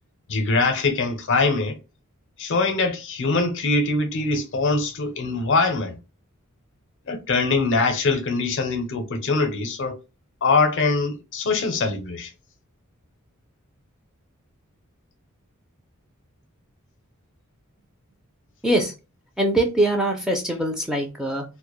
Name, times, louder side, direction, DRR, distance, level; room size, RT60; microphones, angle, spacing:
voice 1, 0.3-1.8 2.4-6.0 7.1-10.0 10.4-12.3, left 3 dB, 60° left, 0.6 m, -23 dB
voice 2, 19.4-21.4, right 1 dB, 5° right, 0.4 m, -22 dB
2.1 x 2.0 x 2.9 m
head